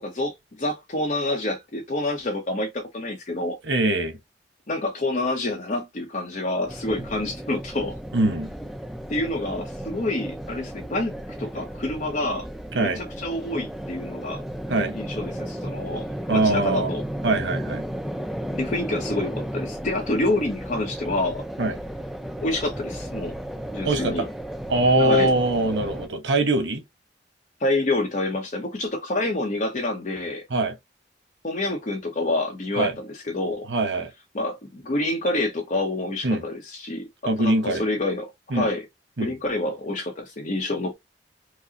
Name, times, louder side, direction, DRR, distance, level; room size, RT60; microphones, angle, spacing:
voice 1, 0.0-3.6 4.7-7.9 9.1-11.1 11.4-12.5 12.8-14.4 14.9-17.0 18.5-21.4 22.4-23.4 23.7-24.3 25.0-25.3 27.6-30.4 31.4-33.7 34.3-37.1 37.4-38.9 39.2-40.9, left 2 dB, 45° left, 0.7 m, -27 dB
voice 2, 3.6-4.1 8.1-8.5 12.7-13.0 14.7-14.9 16.3-16.9 17.2-17.8 21.6-21.8 23.8-24.3 24.7-26.8 30.5-30.7 32.8-32.9 33.7-34.1 36.2-36.4 37.3-37.8 38.5-38.7 39.2-39.3, right 2 dB, 85° right, 1.0 m, -22 dB
sound 1, 6.7-26.1, equal, ahead, 0.3 m, -34 dB
4.8 x 2.0 x 2.7 m
head